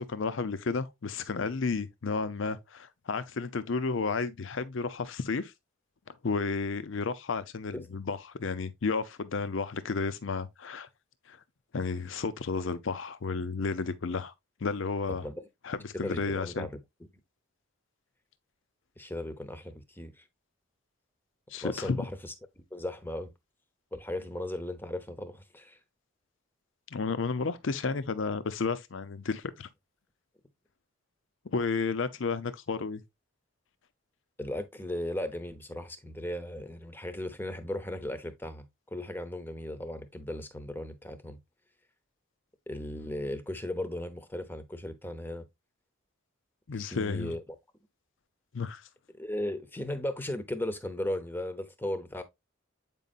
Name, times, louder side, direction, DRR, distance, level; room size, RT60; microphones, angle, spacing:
voice 1, 0.0-5.5 6.2-10.9 11.3-11.4 11.7-14.3 14.6-15.2 15.6-16.7 21.5-22.0 26.9-29.7 31.5-33.0 46.7-47.3 48.5-48.9, left 4 dB, 60° left, 0.6 m, -32 dB
voice 2, 15.1-15.4 15.9-16.8 19.0-20.2 21.6-23.3 23.9-25.8 34.4-38.7 38.9-41.4 42.7-45.5 46.7-47.4 49.2-52.2, left 1 dB, 10° left, 0.8 m, -36 dB
8.3 x 5.3 x 2.4 m
head